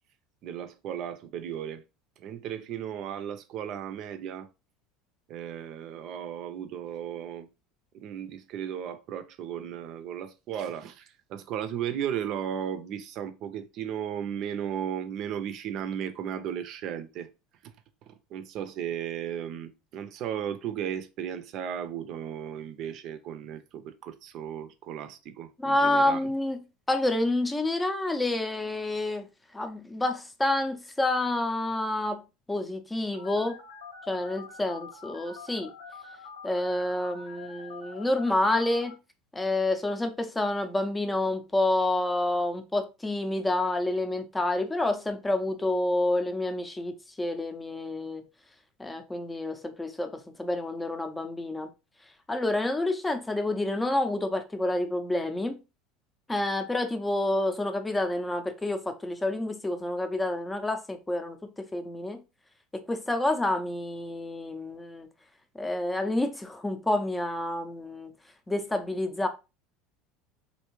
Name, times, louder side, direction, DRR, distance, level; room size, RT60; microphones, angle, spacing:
voice 1, 0.4-1.8 2.2-4.5 5.3-7.5 7.9-17.3 17.6-17.7 18.1-26.3, right 9 dB, 55° right, 0.5 m, -35 dB
voice 2, 25.6-26.6 26.9-29.3 29.5-33.6 34.1-35.7 36.4-39.0 39.3-48.2 48.8-51.7 52.3-55.6 56.3-62.2 62.7-65.1 65.5-68.1 68.5-69.3, left 2 dB, 10° left, 0.6 m, -28 dB
Telephone, 33.1-38.9, left 5 dB, 90° left, 1.3 m, -46 dB
3.3 x 2.7 x 3.0 m
supercardioid pair, 100°, 0 cm